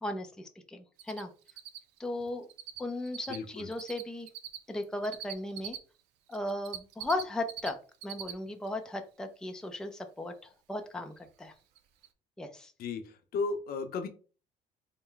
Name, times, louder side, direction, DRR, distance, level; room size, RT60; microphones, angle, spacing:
voice 1, 0.0-1.3 2.0-2.5 2.8-4.3 4.7-5.8 6.3-7.8 8.0-11.5 12.4-12.7, left 1 dB, 5° left, 5 dB, 0.5 m, -36 dB
Cricket, 1.0-1.2 1.5-2.8 3.1-5.8 6.3-7.7 7.9-8.3 8.7-8.8 11.3-11.4 11.8-11.9 12.0-12.1, right 11 dB, 90° right, 0.5 m, -41 dB
voice 2, 3.3-3.7 12.8-14.1, left 4 dB, 65° left, 7 dB, 0.7 m, -35 dB
4.1 x 2.1 x 3.8 m, 0.37 s
cardioid pair, 110°, 17 cm